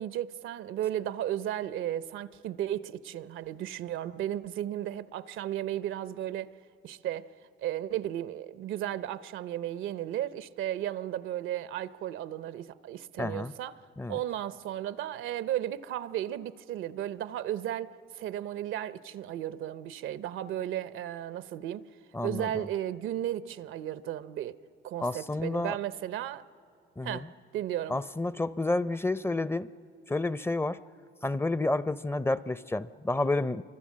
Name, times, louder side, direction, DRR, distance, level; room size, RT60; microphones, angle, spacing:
voice 1, 0.0-6.5 6.8-7.3 7.6-21.9 22.2-24.6 24.8-26.4 27.0-27.3 27.5-28.0, right 12 dB, 85° right, 0.7 m, -34 dB
voice 2, 13.2-13.5 14.0-14.2 22.1-22.5 25.0-25.7 27.0-27.3 27.9-29.7 30.1-30.8 31.2-33.6, left 2 dB, 10° left, 0.5 m, -30 dB
26.0 x 24.0 x 7.4 m
cardioid pair, 90°, 20 cm